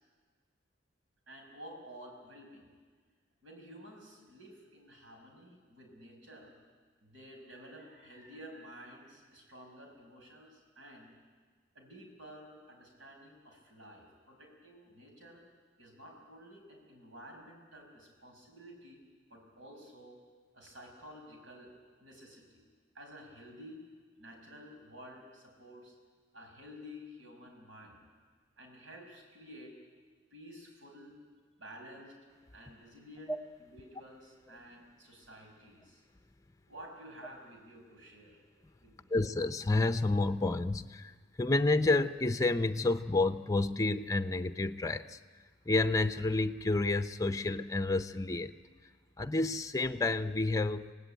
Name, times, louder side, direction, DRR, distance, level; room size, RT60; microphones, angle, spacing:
voice 1, 1.3-2.7 3.4-6.6 7.0-11.1 11.7-15.4 15.8-19.0 19.3-20.2 20.5-21.7 22.0-22.7 22.9-23.8 24.2-26.0 26.3-28.0 28.6-29.7 30.3-31.2 31.6-32.1 32.5-33.3 33.6-36.0 36.7-38.4 38.8-39.1, equal, 80° right, 2 dB, 6.0 m, -52 dB
voice 2, 39.1-45.2 45.7-48.5 49.2-50.9, left 2 dB, 15° left, 9 dB, 0.6 m, -30 dB
26.0 x 17.5 x 9.0 m, 1.5 s
head